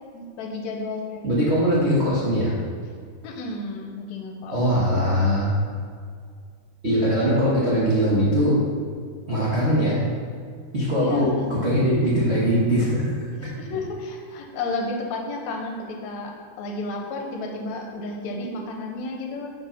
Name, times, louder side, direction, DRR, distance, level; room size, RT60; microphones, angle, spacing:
voice 1, 0.1-1.5 3.2-4.6 10.9-11.5 13.4-19.5, left 2 dB, 75° left, 2 dB, 2.0 m, -32 dB
voice 2, 1.2-2.5 4.5-5.6 6.8-8.6 9.3-10.0 10.7-13.1 13.4-13.5, equal, 75° right, -8 dB, 0.6 m, -21 dB
6.1 x 4.8 x 5.7 m, 2.1 s
omnidirectional pair, 3.4 m